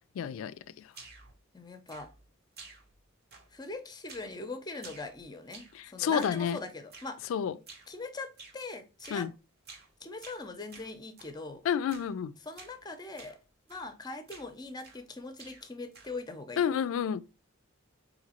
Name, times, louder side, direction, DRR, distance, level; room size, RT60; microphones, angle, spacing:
voice 1, 0.2-0.9 5.7-6.6 7.3-7.6 9.1-9.3 11.6-12.3 16.6-17.2, left 8 dB, 80° left, 0.3 m, -30 dB
sound 1, 0.9-1.4 1.9-2.3 2.6-3.0 3.3-3.7 4.1-4.4 4.7-5.8 6.2-6.5 6.9-7.2 7.7-7.9 8.4-8.6 9.0-9.3 9.6-9.9 10.2-11.4 11.9-12.2 12.5-12.8 13.2-13.4 13.7-14.0 14.3-15.1 15.4-16.2, right 4 dB, 50° right, 0.9 m, -52 dB
voice 2, 1.5-2.1 3.5-5.7 5.9-7.2 7.9-9.3 10.0-11.6 12.4-13.4 13.7-16.8, left 3 dB, 20° left, 0.6 m, -41 dB
4.0 x 2.7 x 2.8 m
head